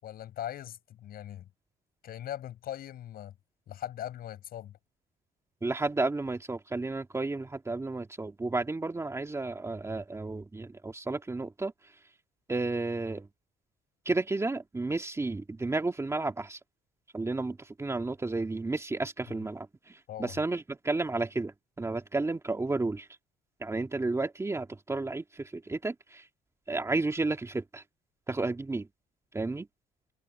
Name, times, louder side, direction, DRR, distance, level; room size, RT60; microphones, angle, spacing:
voice 1, 0.0-1.5 2.0-3.3 3.7-4.8 19.3-19.4 20.1-20.4, left 11 dB, 60° left, 6.5 m, -40 dB
voice 2, 5.6-11.7 12.5-13.3 14.1-16.6 17.1-23.1 23.6-26.3 26.7-27.8 28.3-28.9 29.3-29.7, right 3 dB, 15° right, 2.4 m, -32 dB
cardioid pair, 110°, 17 cm